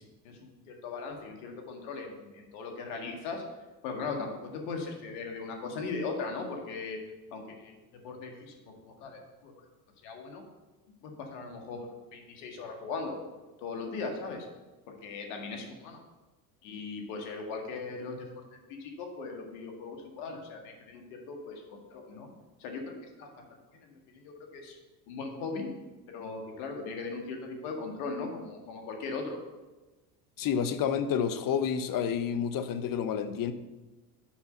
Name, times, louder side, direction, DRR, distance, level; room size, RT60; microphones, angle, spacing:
voice 1, 0.0-3.4 3.8-7.0 7.3-7.7 8.0-9.6 10.0-10.4 11.0-13.2 13.6-14.5 14.9-16.0 16.6-18.4 18.7-22.3 22.6-23.3 23.8-24.8 25.1-25.7 26.1-29.4, left 4 dB, 75° left, 3 dB, 2.0 m, -39 dB
voice 2, 30.4-33.5, left 7 dB, 45° left, 11 dB, 0.9 m, -29 dB
7.3 x 5.4 x 6.6 m, 1.2 s
supercardioid pair, 85°, 46 cm